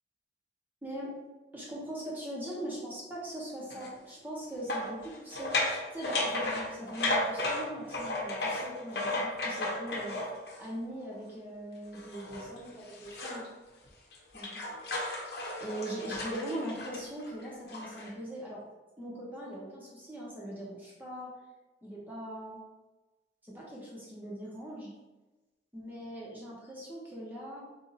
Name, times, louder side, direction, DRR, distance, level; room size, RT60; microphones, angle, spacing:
voice 1, 0.8-1.1 1.5-5.5 5.9-10.2 10.6-13.5 14.3-14.6 15.6-18.6 19.0-21.3 21.8-22.6 23.4-24.9 25.7-27.7, right 1 dB, 10° right, -5 dB, 1.0 m, -41 dB
sound 1, 3.7-3.9 4.7-10.7 11.9-13.5 13.9-18.1, left 2 dB, 60° left, 0.9 m, -34 dB
4.0 x 2.8 x 3.9 m, 1.1 s
head